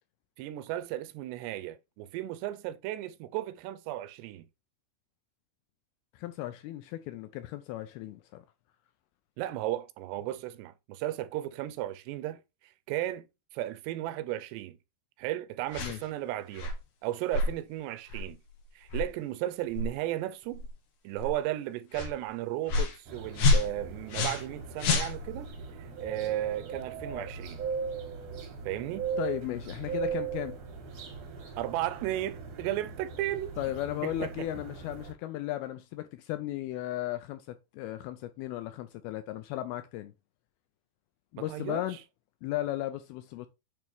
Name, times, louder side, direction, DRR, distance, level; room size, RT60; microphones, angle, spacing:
voice 1, 0.4-4.5 9.4-12.4 12.9-13.3 13.5-14.8 15.2-16.7 17.0-18.4 18.8-20.7 21.0-25.5 26.0-27.6 28.7-29.1 31.6-33.5 34.0-34.6 41.4-42.0, right 14 dB, 85° right, 2.7 m, -35 dB
voice 2, 6.2-8.4 15.8-16.0 29.2-30.6 33.6-40.1 41.3-42.0 42.4-43.5, left 14 dB, 85° left, 2.2 m, -35 dB
sound 1, 15.7-16.0 16.5-16.8 17.3-17.5 18.1-18.3 18.9-19.1 19.7-19.9 20.5-20.7 21.2-21.3 21.9-22.1 22.7-23.0 23.4-24.5 24.8-25.5, left 3 dB, 65° left, 2.1 m, -28 dB
sound 2, 23.1-35.1, right 6 dB, 70° right, 1.6 m, -39 dB
8.6 x 3.2 x 3.4 m
omnidirectional pair, 4.8 m